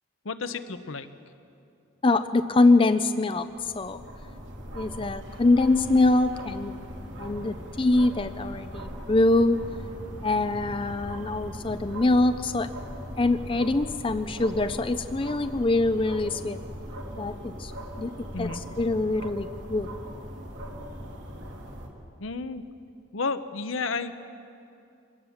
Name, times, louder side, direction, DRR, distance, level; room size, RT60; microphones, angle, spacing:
voice 1, 0.2-1.1 18.3-18.6 22.2-22.6 23.1-24.3, left 4 dB, 75° left, 10 dB, 0.9 m, -32 dB
voice 2, 2.0-4.0 4.7-6.7 7.2-9.6 10.2-12.7 13.2-16.6 17.2-17.7 18.0-18.1 18.4-19.9, left 2 dB, 25° left, 10 dB, 0.5 m, -24 dB
sound 1, 3.4-21.9, equal, 65° right, 2.9 m, -39 dB
24.5 x 18.0 x 7.2 m, 2.6 s
head